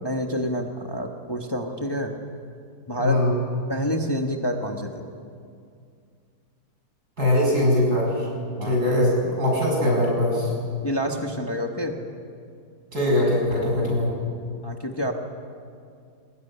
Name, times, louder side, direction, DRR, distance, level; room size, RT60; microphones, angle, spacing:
voice 1, 0.0-2.2 2.9-3.2 3.7-5.1 8.6-8.8 10.8-12.0 14.6-15.1, equal, 15° left, 3 dB, 1.3 m, -28 dB
voice 2, 3.0-3.3 7.2-8.1 8.6-10.5 12.9-14.1, left 1 dB, 70° right, -2 dB, 7.7 m, -21 dB
22.5 x 19.0 x 10.0 m, 2.3 s
omnidirectional pair, 1.8 m